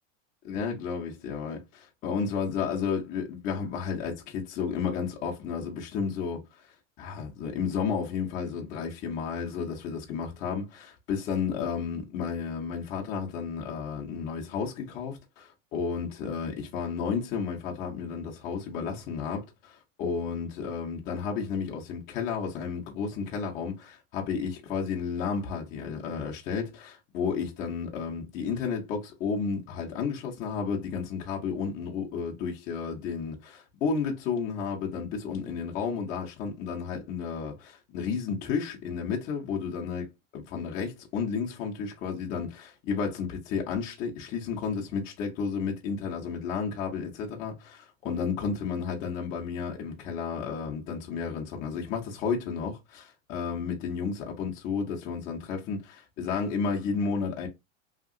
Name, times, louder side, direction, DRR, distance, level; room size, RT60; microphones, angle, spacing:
voice 1, 0.4-6.4 7.0-40.1 40.3-57.5, left 6 dB, 20° left, 0.4 m, -32 dB
2.8 x 2.8 x 2.4 m
supercardioid pair, 160°, 38 cm